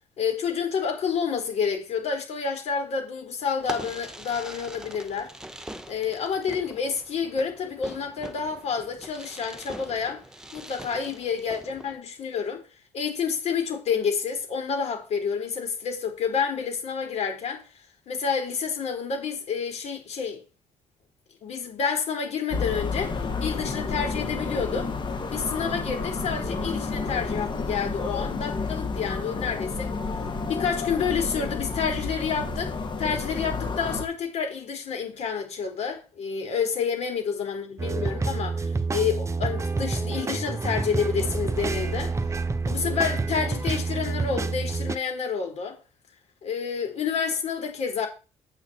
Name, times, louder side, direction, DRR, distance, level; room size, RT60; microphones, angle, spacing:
voice 1, 0.2-5.3 5.9-10.2 10.5-12.6 12.9-17.6 18.1-20.4 21.4-24.9 25.3-29.9 30.5-42.1 42.7-45.8 46.4-48.1, left 6 dB, 65° left, 4.2 m, -29 dB
Fireworks, 3.6-12.0, right 1 dB, 5° right, 1.6 m, -42 dB
sound 1, 22.5-34.0, left 4 dB, 40° left, 2.1 m, -30 dB
sound 2, 37.8-45.0, right 3 dB, 25° right, 1.0 m, -28 dB
9.8 x 8.6 x 4.5 m
cardioid pair, 90°, 12 cm